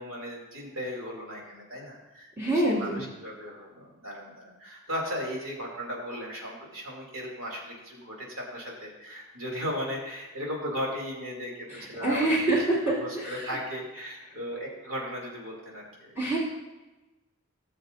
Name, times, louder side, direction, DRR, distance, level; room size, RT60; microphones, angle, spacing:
voice 1, 0.0-11.5 11.8-12.6 12.9-16.1, equal, 85° right, -2 dB, 2.9 m, -36 dB
voice 2, 2.4-3.0 11.7-13.5 16.2-16.4, right 2 dB, 10° right, -9 dB, 2.4 m, -26 dB
18.0 x 6.9 x 2.6 m, 1.1 s
head